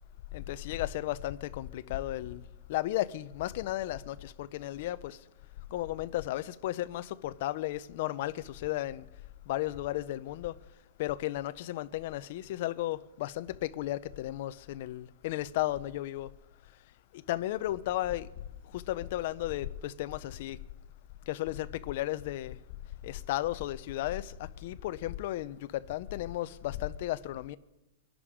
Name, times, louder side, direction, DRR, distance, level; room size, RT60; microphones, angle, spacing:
voice 1, 0.3-2.4 2.7-5.2 5.7-9.0 9.5-10.6 11.0-16.3 17.1-18.3 18.7-20.6 21.3-22.6 23.0-27.6, left 15 dB, 40° left, 0.6 m, -34 dB
24.0 x 11.5 x 4.9 m
supercardioid pair, 180°, 0 cm